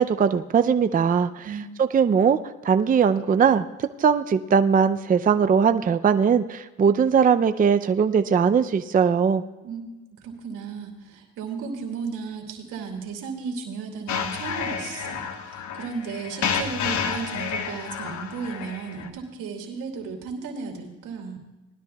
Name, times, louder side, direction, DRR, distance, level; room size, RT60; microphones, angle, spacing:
voice 1, 0.0-1.5 1.8-2.4 2.6-3.7 4.0-9.4, right 6 dB, 30° right, 10 dB, 0.5 m, -20 dB
voice 2, 10.1-21.4, right 5 dB, 90° right, 1 dB, 2.6 m, -35 dB
sound 1, 14.1-19.1, left 6 dB, 75° left, 1.1 m, -30 dB
19.5 x 12.5 x 2.3 m, 1.1 s
cardioid pair, 90°, 30 cm